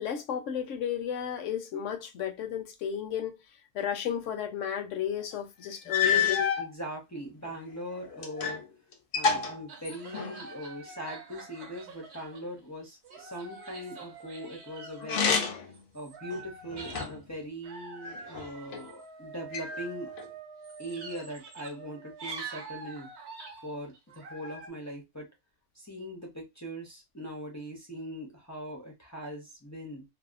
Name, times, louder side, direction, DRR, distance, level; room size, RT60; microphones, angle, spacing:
voice 1, 0.0-3.3 3.7-6.4, left 9 dB, 80° left, 0.9 m, -33 dB
sound 1, 5.3-5.4 5.9-6.7 7.4-8.7 8.9-10.5 15.0-15.8 16.3-17.3 18.0-18.8 19.5-20.3, left 6 dB, 60° left, 0.6 m, -29 dB
voice 2, 5.8-6.3 6.6-8.6 9.1-20.1 20.8-23.1 23.6-25.3 25.7-30.0, equal, 25° left, 0.3 m, -41 dB
sound 2, 9.7-12.6 13.0-17.2 17.6-24.7, right 4 dB, 65° right, 0.9 m, -45 dB
2.7 x 2.0 x 2.4 m
omnidirectional pair, 1.3 m